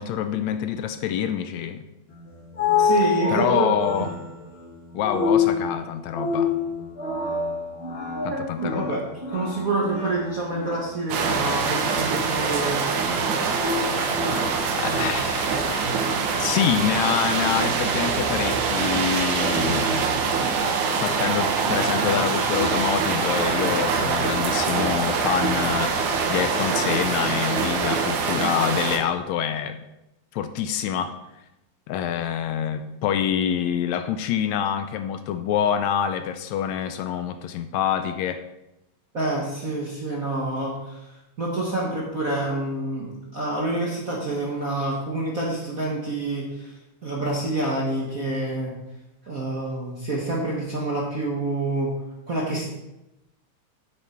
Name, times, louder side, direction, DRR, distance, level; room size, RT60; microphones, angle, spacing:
voice 1, 0.0-1.9 3.3-4.1 4.9-6.5 8.2-8.9 13.7-14.0 14.8-16.1 16.4-19.9 21.0-26.0 26.3-29.8 30.3-31.2 31.9-38.4, left 9 dB, 80° left, 9 dB, 1.7 m, -26 dB
sound 1, 2.1-15.0, left 5 dB, 40° left, 0.8 m, -28 dB
voice 2, 2.8-4.1 8.1-9.0 9.3-12.8 39.1-41.0 41.4-46.7 47.0-48.7 49.3-51.9 52.3-52.7, right 2 dB, 40° right, -3 dB, 1.2 m, -27 dB
sound 2, 11.1-29.0, right 5 dB, 90° right, 2.6 m, -24 dB
9.6 x 8.3 x 4.3 m, 0.93 s
omnidirectional pair, 3.4 m